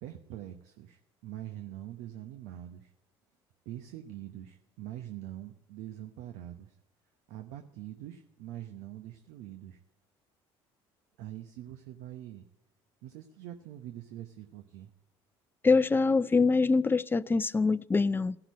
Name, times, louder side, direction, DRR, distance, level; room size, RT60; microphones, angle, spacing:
voice 1, 0.0-2.9 3.6-6.8 7.3-9.8 11.2-12.5 13.0-14.9, right 12 dB, 75° right, 0.9 m, -44 dB
voice 2, 15.6-18.4, left 4 dB, 15° left, 0.4 m, -24 dB
15.5 x 5.9 x 9.4 m
hypercardioid pair, 70°, 13 cm